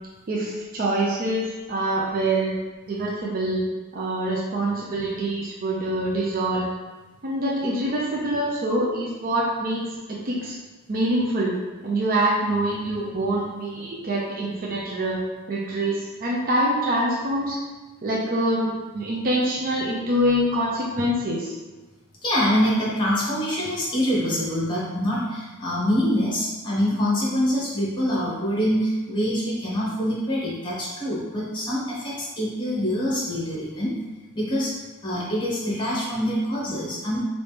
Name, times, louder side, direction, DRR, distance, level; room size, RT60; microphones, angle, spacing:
voice 1, 0.3-2.5 2.9-3.6 3.9-6.7 7.2-10.6 10.9-11.6 11.8-15.2 15.5-17.6 18.0-21.5, right 1 dB, 40° right, -4 dB, 0.5 m, -25 dB
voice 2, 22.2-33.9 34.3-34.8 35.0-37.2, equal, 20° left, -6 dB, 1.0 m, -25 dB
3.2 x 2.6 x 3.3 m, 1.2 s
head